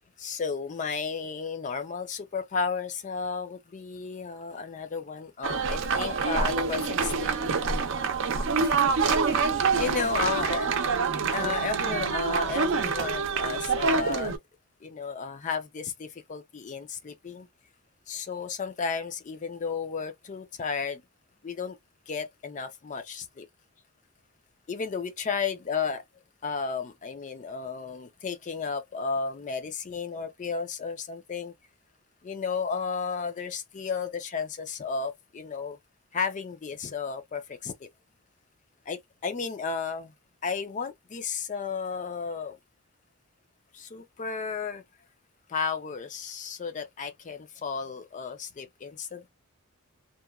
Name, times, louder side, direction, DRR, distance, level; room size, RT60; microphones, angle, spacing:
voice 1, 0.2-7.3 8.6-8.7 9.8-10.7 11.3-14.3 14.8-17.5 18.1-21.0 21.4-21.8 22.1-23.5 24.7-26.0 26.4-31.5 32.2-35.8 36.1-37.7 38.9-40.1 40.4-42.6 43.7-44.8 45.5-49.3, left 5 dB, 35° left, 0.4 m, -33 dB
sound 1, 5.4-14.4, right 5 dB, 55° right, 0.6 m, -26 dB
2.9 x 2.2 x 2.3 m
head